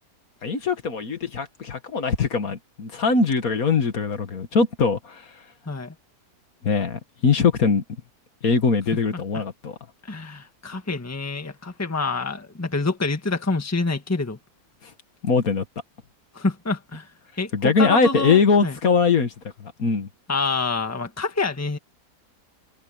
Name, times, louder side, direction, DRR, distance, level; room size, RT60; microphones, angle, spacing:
voice 1, 0.4-5.3 6.6-7.8 8.4-9.8 15.2-15.7 17.5-19.3 19.6-20.1, left 5 dB, 60° left, 2.0 m, -21 dB
voice 2, 10.0-14.4 16.3-17.1 17.4-18.7 20.3-21.8, left 3 dB, 10° left, 1.4 m, -27 dB
omnidirectional pair, 1.7 m